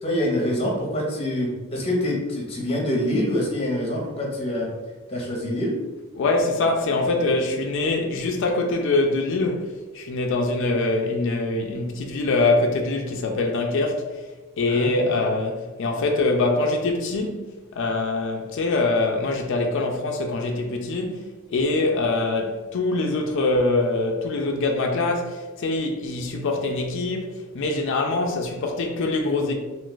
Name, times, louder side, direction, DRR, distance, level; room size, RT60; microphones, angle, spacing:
voice 1, 0.0-4.7 5.1-5.7 7.4-7.5 14.7-14.9, left 1 dB, 30° left, 0.8 m, -25 dB
voice 2, 6.1-14.0 14.6-29.5, left 2 dB, 60° left, 0.4 m, -24 dB
2.4 x 2.4 x 3.8 m
head